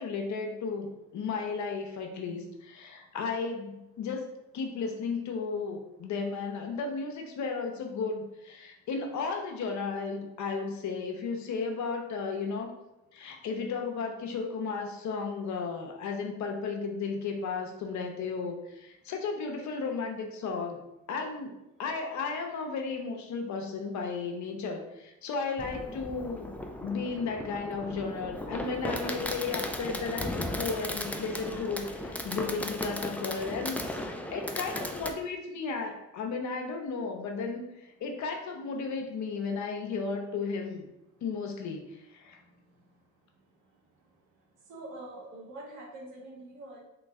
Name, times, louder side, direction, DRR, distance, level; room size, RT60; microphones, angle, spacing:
voice 1, 0.0-4.2 4.5-12.7 13.1-20.8 21.1-21.5 21.8-26.5 26.8-34.0 34.3-40.9 41.2-42.4, left 4 dB, 70° left, 3 dB, 0.7 m, -34 dB
Fireworks, 25.6-35.1, left 1 dB, 5° left, 0.3 m, -36 dB
voice 2, 44.7-46.8, right 1 dB, 85° right, -2 dB, 1.2 m, -44 dB
3.2 x 3.1 x 3.6 m, 0.91 s
cardioid pair, 90°, 30 cm